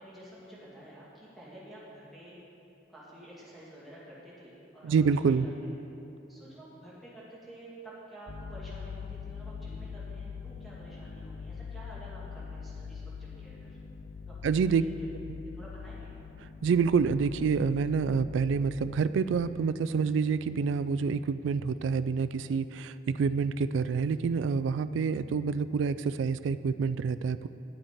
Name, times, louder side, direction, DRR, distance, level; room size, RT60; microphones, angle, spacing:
voice 1, 0.0-2.4 2.9-5.4 5.6-5.8 6.3-13.8 14.3-14.4 14.6-15.1 15.4-16.1, right 1 dB, ahead, -9 dB, 2.3 m, -50 dB
voice 2, 4.8-5.5 14.4-14.8 16.6-27.5, right 5 dB, 85° right, 14 dB, 0.3 m, -27 dB
sound 1, 8.3-19.0, left 6 dB, 65° left, 0.5 m, -43 dB
10.0 x 8.9 x 4.5 m, 2.8 s
head